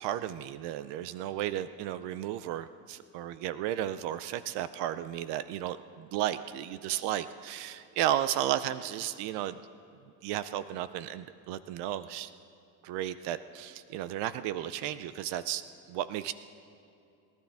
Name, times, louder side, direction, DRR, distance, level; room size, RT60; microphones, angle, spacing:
voice 1, 0.0-9.6 10.2-12.3 12.8-15.6 15.9-16.3, right 12 dB, 70° right, 14 dB, 0.6 m, -33 dB
27.0 x 12.0 x 3.5 m, 2.6 s
supercardioid pair, 95°, 43 cm